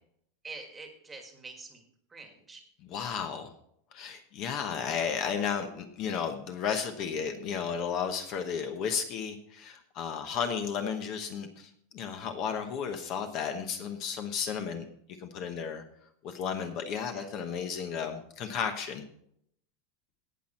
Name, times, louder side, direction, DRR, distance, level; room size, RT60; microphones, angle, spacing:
voice 1, 0.4-1.8 2.1-2.6 17.1-17.3, right 3 dB, 10° right, 4 dB, 1.6 m, -46 dB
voice 2, 2.8-3.5 3.9-14.8 15.2-15.8 16.2-19.1, left 7 dB, 35° left, 7 dB, 1.0 m, -33 dB
18.0 x 6.1 x 4.2 m, 0.69 s
supercardioid pair, 175°, 0 cm